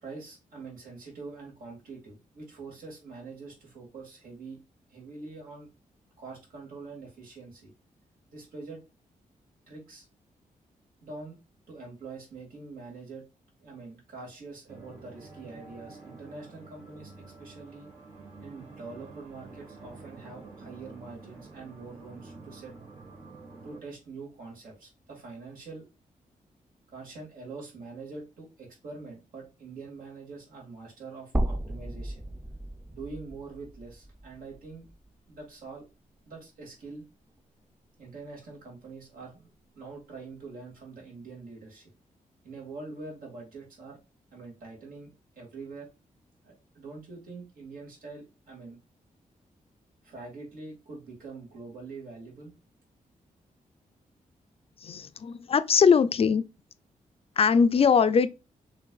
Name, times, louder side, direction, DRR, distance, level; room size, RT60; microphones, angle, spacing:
voice 1, 0.0-4.6 4.9-5.7 6.2-7.7 8.3-8.8 9.7-10.1 11.0-11.4 11.7-13.2 13.6-17.9 18.4-22.7 23.6-25.9 26.9-32.2 32.9-34.9 35.3-35.8 36.3-37.0 38.0-39.5 39.7-41.9 42.4-44.0 44.3-45.9 46.4-48.8 50.0-52.5, right 3 dB, 85° right, 2.4 m, -44 dB
sound 1, 14.7-23.8, right 3 dB, 50° right, 2.3 m, -48 dB
sound 2, 31.3-35.5 35.9-36.0 37.4-37.5, right 1 dB, 10° right, 0.5 m, -34 dB
voice 2, 54.8-56.5 57.4-58.3, left 6 dB, 45° left, 0.4 m, -21 dB
5.9 x 3.3 x 2.4 m
wide cardioid pair, 115°, 14 cm